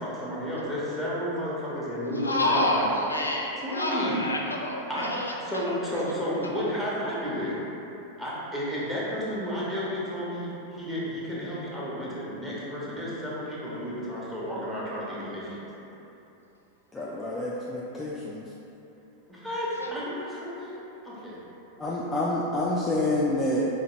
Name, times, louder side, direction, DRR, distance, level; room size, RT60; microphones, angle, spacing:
voice 1, 0.0-2.9 3.6-4.2 4.9-5.1 5.4-7.6 8.2-15.6 19.3-20.7 21.0-21.4, equal, 5° right, -8 dB, 1.0 m, -32 dB
voice 2, 2.1-5.4 5.6-5.8 6.5-6.6 19.7-19.9, left 1 dB, 80° left, -1 dB, 0.4 m, -28 dB
voice 3, 16.9-18.5 21.8-23.7, left 1 dB, 15° left, -6 dB, 0.3 m, -28 dB
4.6 x 2.3 x 3.1 m, 3.0 s
figure-of-eight pair, 90°, 0 cm